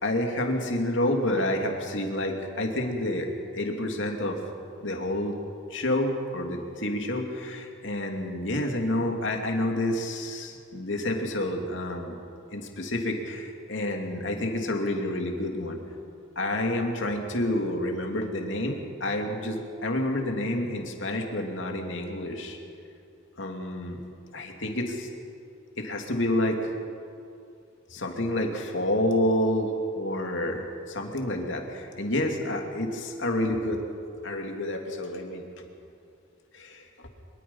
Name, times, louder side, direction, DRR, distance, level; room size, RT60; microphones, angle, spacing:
voice 1, 0.0-4.4 4.8-5.4 5.7-12.2 12.5-15.8 16.4-22.6 23.4-24.0 24.3-25.1 25.8-26.6 27.9-33.8 34.2-35.4 36.5-37.1, left 1 dB, 65° left, 2 dB, 2.7 m, -29 dB
24.0 x 22.5 x 5.6 m, 2.5 s
head